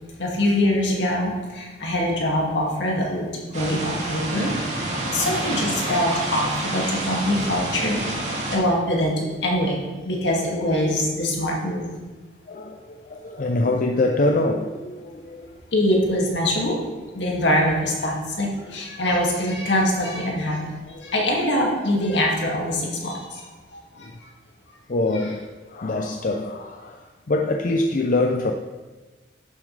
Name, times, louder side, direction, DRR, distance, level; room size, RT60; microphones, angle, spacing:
voice 1, 0.2-8.0 8.5-11.9 15.7-16.8 17.1-20.6 21.0-23.4 23.7-24.1, left 1 dB, 75° left, -2 dB, 2.1 m, -23 dB
sound 1, 3.5-8.6, right 1 dB, 40° right, 2.1 m, -28 dB
voice 2, 12.5-15.6 18.7-18.8 20.9-21.7 24.0-24.1 24.9-28.5, left 2 dB, 45° left, 3 dB, 0.5 m, -25 dB
11.5 x 7.3 x 3.3 m, 1.3 s
head